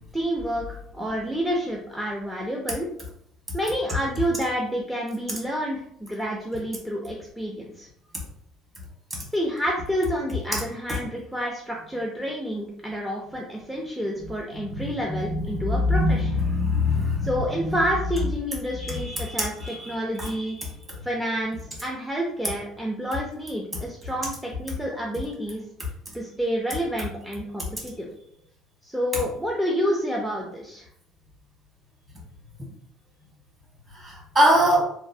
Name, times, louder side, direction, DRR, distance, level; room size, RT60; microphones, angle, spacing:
voice 1, 0.1-2.9 3.5-7.9 9.3-16.3 17.2-20.6 21.0-25.6 26.1-28.1 28.8-30.9, equal, 5° right, -2 dB, 0.4 m, -29 dB
voice 2, 14.8-17.3 17.6-17.7 18.8-20.3 33.9-34.8, left 1 dB, 30° right, -3 dB, 1.3 m, -23 dB
3.0 x 2.3 x 2.7 m, 0.71 s
cardioid pair, 115°, 0 cm